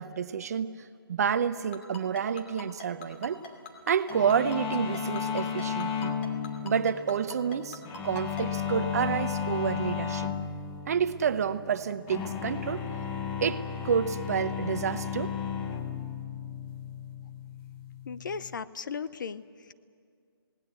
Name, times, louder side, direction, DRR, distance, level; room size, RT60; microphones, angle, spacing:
voice 1, 0.0-3.4 3.9-6.1 6.6-10.3 10.9-12.8 13.4-15.3, right 7 dB, 40° right, 12 dB, 0.8 m, -29 dB
Ringtone, 1.7-8.4, left 3 dB, 30° left, 2.7 m, -42 dB
sound 1, 4.1-18.6, left 7 dB, 15° left, 1.0 m, -34 dB
voice 2, 18.1-19.7, left 6 dB, 50° left, 14 dB, 0.7 m, -37 dB
28.0 x 18.5 x 8.1 m, 2.3 s
hypercardioid pair, 165°, 13 cm